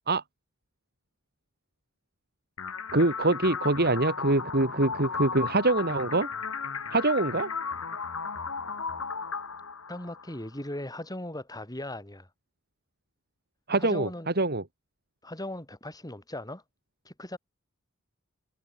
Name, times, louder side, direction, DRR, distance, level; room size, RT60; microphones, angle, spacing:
sound 1, 2.6-10.5, left 5 dB, 90° left, 2.9 m, -35 dB
voice 1, 2.9-6.3 6.9-7.5 13.7-14.6, right 2 dB, 50° right, 2.9 m, -24 dB
voice 2, 9.9-12.3 13.8-14.3 15.2-16.6 17.0-17.4, left 1 dB, 20° left, 8.0 m, -38 dB
head